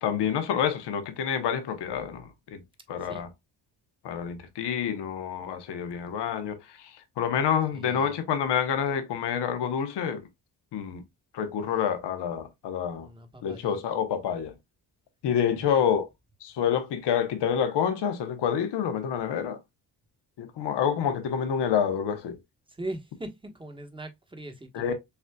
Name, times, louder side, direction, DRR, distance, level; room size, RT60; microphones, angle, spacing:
voice 1, 0.0-2.6 2.9-3.3 4.0-10.2 10.7-11.0 11.3-13.1 13.4-14.5 15.2-16.1 16.4-19.6 20.4-22.4 24.7-24.9, left 8 dB, 80° left, 0.9 m, -28 dB
voice 2, 7.7-8.1 13.0-13.8 15.5-15.8 22.8-24.9, right 1 dB, 10° right, 1.2 m, -40 dB
6.9 x 2.5 x 2.2 m
cardioid pair, 75°, 40 cm